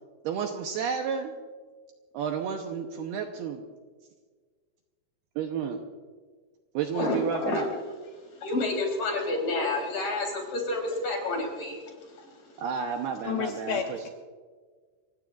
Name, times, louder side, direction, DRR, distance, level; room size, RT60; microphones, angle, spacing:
voice 1, 0.2-1.3 2.1-3.6 5.4-5.8 6.7-7.7 12.6-14.1, right 7 dB, 75° right, 3 dB, 2.5 m, -31 dB
voice 2, 7.0-7.6 8.4-11.8 12.1-12.4, left 2 dB, 45° left, 1 dB, 5.1 m, -29 dB
voice 3, 13.2-14.1, left 8 dB, 75° left, 3 dB, 2.7 m, -31 dB
29.5 x 16.5 x 2.5 m, 1.5 s
omnidirectional pair, 5.4 m